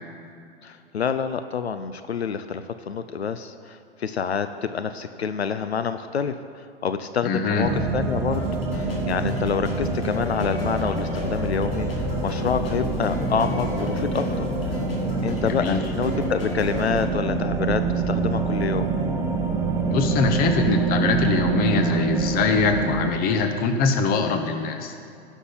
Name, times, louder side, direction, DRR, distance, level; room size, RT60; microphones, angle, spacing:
voice 1, 0.6-8.4 8.7-11.9 12.2-14.5 15.2-18.9, left 6 dB, 85° left, 10 dB, 0.5 m, -27 dB
voice 2, 7.2-7.7 15.4-15.8 19.9-24.9, left 4 dB, 30° left, 6 dB, 1.0 m, -23 dB
sound 1, 7.6-23.1, right 4 dB, 10° right, 1.2 m, -26 dB
sound 2, 8.3-17.1, left 2 dB, 65° left, 2.5 m, -35 dB
16.0 x 6.1 x 4.0 m, 2.5 s
figure-of-eight pair, 100°, 31 cm